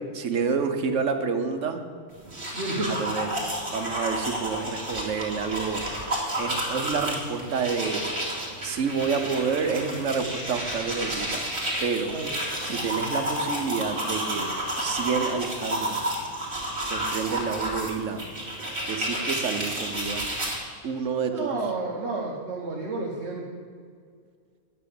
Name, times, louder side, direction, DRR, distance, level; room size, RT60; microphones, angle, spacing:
voice 1, 0.1-1.8 2.9-3.3 3.7-5.8 6.4-8.0 8.6-11.4 11.8-12.2 12.6-14.5 14.8-16.1 16.8-18.2 18.9-20.3 20.8-21.6, right 5 dB, 75° right, 6 dB, 1.3 m, -29 dB
sound 1, 2.2-20.6, right 1 dB, 40° right, 2.6 m, -31 dB
voice 2, 2.5-2.9 12.1-12.3 21.3-23.4, right 3 dB, 60° right, -2 dB, 1.5 m, -31 dB
9.5 x 6.7 x 8.4 m, 2.1 s
omnidirectional pair, 1.3 m